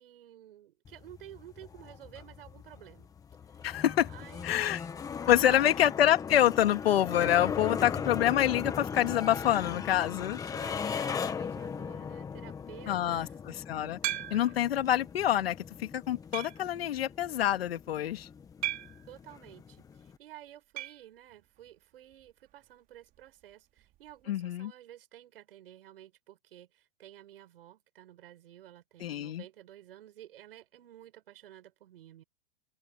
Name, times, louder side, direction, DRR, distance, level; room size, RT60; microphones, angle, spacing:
voice 1, 0.0-3.1 3.6-3.8 4.1-4.5 5.3-5.8 10.1-13.4 19.1-32.2, right 12 dB, 70° right, 7.6 m, -52 dB
sound 1, 0.8-20.2, left 6 dB, 10° left, 1.5 m, -39 dB
voice 2, 3.6-4.1 4.4-4.8 5.3-10.4 12.9-13.3 13.7-14.0 14.3-18.3 24.3-24.7 29.0-29.4, left 11 dB, 75° left, 2.5 m, -26 dB
sound 2, 14.0-14.7 15.3-15.4 16.3-16.7 18.6-19.1 20.8-21.1 21.3-21.4 21.7-21.8 23.8-23.9, right 13 dB, 25° right, 3.3 m, -36 dB
open air
hypercardioid pair, 155°, 30 cm